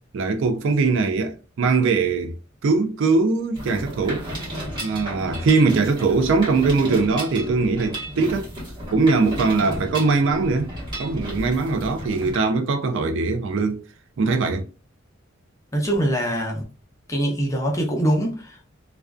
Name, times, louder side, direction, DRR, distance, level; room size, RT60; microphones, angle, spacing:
voice 1, 0.1-2.4 2.6-4.3 4.8-8.5 8.9-10.7 11.0-13.8 14.2-14.7, right 4 dB, 65° right, 0.4 m, -21 dB
Mechanisms, 3.5-12.4, equal, 25° right, 1.1 m, -33 dB
voice 2, 15.7-16.6 17.1-18.7, right 1 dB, 15° left, 0.6 m, -23 dB
2.4 x 2.2 x 2.3 m
head